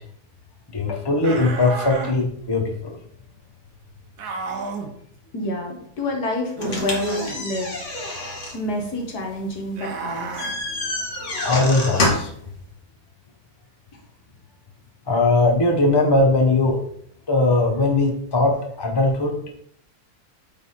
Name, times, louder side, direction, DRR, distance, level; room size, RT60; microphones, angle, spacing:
voice 1, 0.7-3.0 11.4-12.3 15.1-16.8 17.3-19.5, left 2 dB, 20° left, 1 dB, 0.7 m, -20 dB
sound 1, 1.2-2.2 4.2-4.9 6.6-7.4 9.7-10.5, right 5 dB, 85° right, 1.5 m, -31 dB
voice 2, 5.3-7.8 8.5-10.4, left 1 dB, 85° left, 1 dB, 2.1 m, -28 dB
sound 2, 6.6-12.4, left 2 dB, 50° left, 1.7 m, -28 dB
8.9 x 3.6 x 4.2 m, 0.66 s
omnidirectional pair, 1.6 m